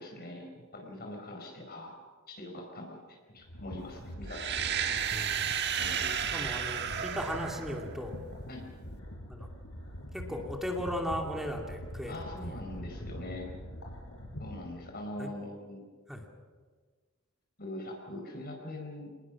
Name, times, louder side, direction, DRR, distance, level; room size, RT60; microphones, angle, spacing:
voice 1, 0.0-1.9 2.3-4.8 5.8-6.1 8.5-8.7 12.1-13.5 14.4-15.9 17.6-19.1, left 1 dB, 50° left, 2 dB, 4.8 m, -42 dB
sound 1, 3.4-14.9, equal, 75° left, 5.1 m, -44 dB
sound 2, 4.3-8.2, right 8 dB, 55° right, 1.4 m, -33 dB
voice 2, 5.1-5.4 6.3-8.1 9.3-9.5 10.1-12.5 15.2-15.3 16.1-16.3, equal, ahead, 2 dB, 2.5 m, -36 dB
26.5 x 20.0 x 6.2 m, 1.5 s
head